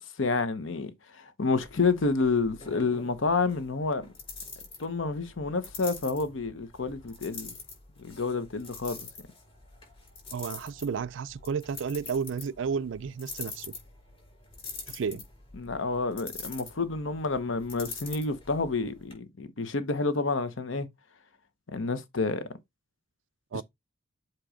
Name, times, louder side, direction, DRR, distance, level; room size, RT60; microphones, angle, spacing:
voice 1, 0.0-4.1 4.8-7.5 8.0-9.0 15.5-20.9 21.7-22.5 23.5-23.6, left 3 dB, 75° left, 0.9 m, -29 dB
sound 1, 1.6-19.1, left 4 dB, 30° left, 4.8 m, -45 dB
voice 2, 10.3-13.7 14.9-15.2 23.5-23.6, right 6 dB, 65° right, 0.4 m, -32 dB
7.7 x 3.0 x 4.9 m
head